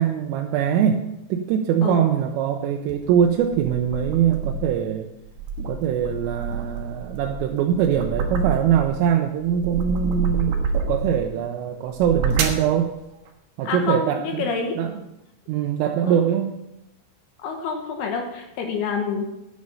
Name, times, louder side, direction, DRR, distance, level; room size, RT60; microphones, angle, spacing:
voice 1, 0.0-5.1 5.7-10.5 10.9-12.9 13.6-14.4 14.8-15.0 15.5-16.6, right 9 dB, 90° right, 2 dB, 3.3 m, -22 dB
sound 1, 2.9-4.8 5.3-9.0 9.4-11.3 11.9-12.7, right 4 dB, 65° right, 2.7 m, -28 dB
voice 2, 13.6-14.8 16.0-16.2 17.4-19.3, left 5 dB, 70° left, 3 dB, 2.5 m, -27 dB
9.8 x 9.6 x 5.5 m, 0.89 s
omnidirectional pair, 5.8 m